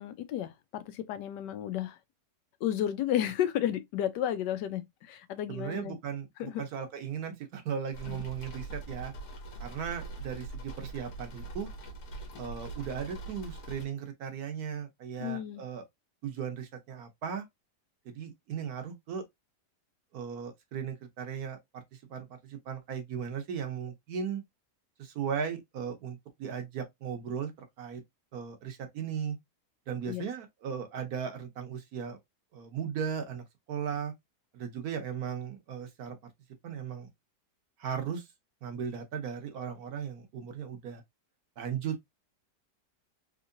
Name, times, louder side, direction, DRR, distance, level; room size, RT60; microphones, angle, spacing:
voice 1, 0.0-2.0 2.6-5.9 6.4-6.6 8.1-8.2 15.2-15.6 30.1-30.3, left 11 dB, 80° left, 1.2 m, -32 dB
voice 2, 5.5-9.1 9.6-11.7 12.4-15.8 16.2-17.4 18.0-19.2 20.1-24.4 25.0-27.5 27.8-28.0 28.3-29.4 29.9-32.2 32.5-34.1 34.5-36.2 36.6-37.1 37.8-38.3 38.6-41.0 41.6-42.0, right 7 dB, 65° right, 1.2 m, -37 dB
sound 1, 7.9-13.9, right 2 dB, 65° left, 1.5 m, -42 dB
3.7 x 2.9 x 2.5 m
omnidirectional pair, 1.8 m